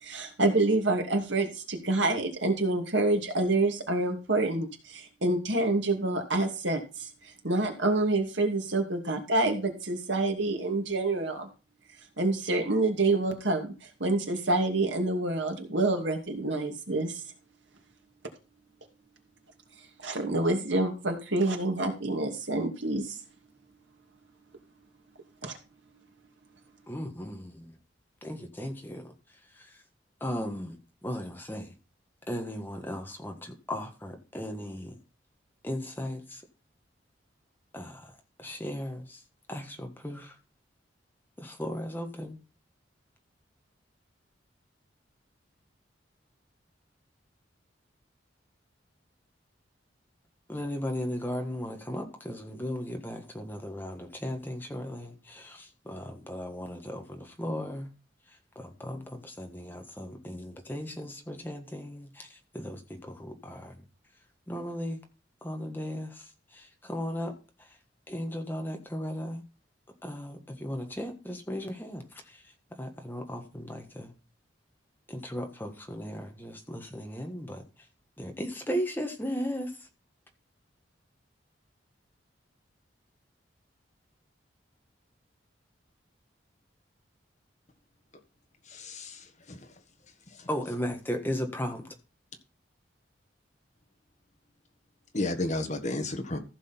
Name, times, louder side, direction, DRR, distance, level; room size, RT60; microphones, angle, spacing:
voice 1, 0.0-11.5 12.2-17.2 20.0-23.2 25.4-25.5, right 2 dB, 75° right, 2.5 m, -27 dB
voice 2, 26.9-27.7 28.2-29.1 29.6-29.8 30.2-31.7 32.3-34.9 35.6-36.4 37.7-38.1 38.4-39.2 39.5-40.4 41.4-42.4 50.5-57.9 58.5-63.8 64.5-65.0 65.4-67.3 68.1-69.4 70.0-72.4 72.8-74.1 75.1-77.6 78.2-79.7 90.5-91.9, equal, 10° left, 1.5 m, -36 dB
voice 3, 88.7-89.6 90.4-90.5 95.1-96.4, left 2 dB, 40° left, 1.5 m, -32 dB
15.0 x 6.2 x 4.4 m
head